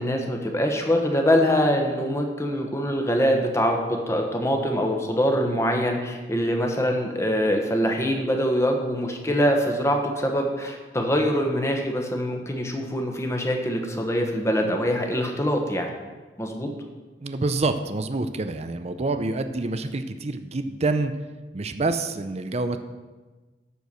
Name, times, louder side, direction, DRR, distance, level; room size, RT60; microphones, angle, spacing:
voice 1, 0.0-15.9 16.4-16.7, equal, 15° left, 2 dB, 1.2 m, -24 dB
voice 2, 17.2-21.1 21.5-22.8, right 3 dB, 40° right, 9 dB, 0.6 m, -27 dB
12.5 x 4.6 x 6.9 m, 1.3 s
head